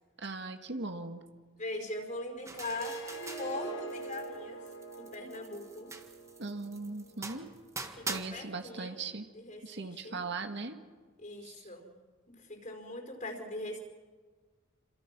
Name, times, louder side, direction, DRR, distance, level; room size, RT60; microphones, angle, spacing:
voice 1, 0.2-1.2 6.4-7.6 8.1-9.3 9.6-10.8 11.4-11.7, right 3 dB, 60° right, 6 dB, 1.9 m, -39 dB
voice 2, 1.6-3.0 3.4-4.7 5.0-5.9 7.9-9.0 9.3-10.2 11.2-11.9 12.3-13.8, left 2 dB, 40° left, 4 dB, 5.0 m, -41 dB
Harp, 2.5-7.7, right 3 dB, 80° left, 4.1 m, -44 dB
sound 1, 2.5-4.4 4.7-8.2, right 3 dB, 15° right, 1.7 m, -43 dB
28.0 x 27.5 x 6.1 m, 1.5 s
head